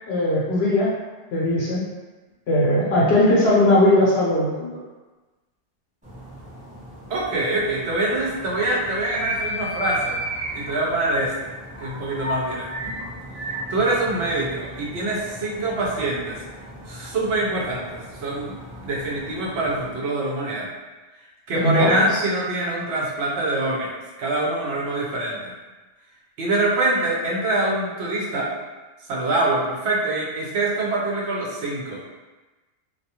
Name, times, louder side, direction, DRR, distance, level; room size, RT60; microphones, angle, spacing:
voice 1, 0.1-0.9 1.3-1.8 2.5-4.7 21.5-22.2, left 1 dB, 65° left, -6 dB, 0.9 m, -19 dB
sound 1, 6.0-20.0, equal, 5° right, 0.9 m, -35 dB
voice 2, 7.1-10.2 10.5-11.5 11.8-13.0 13.5-16.4 16.9-18.6 18.8-20.7 21.5-23.9 24.2-25.5 26.4-28.5 29.1-32.0, right 2 dB, 65° right, -4 dB, 0.9 m, -24 dB
2.3 x 2.3 x 2.8 m, 1.2 s
omnidirectional pair, 1.2 m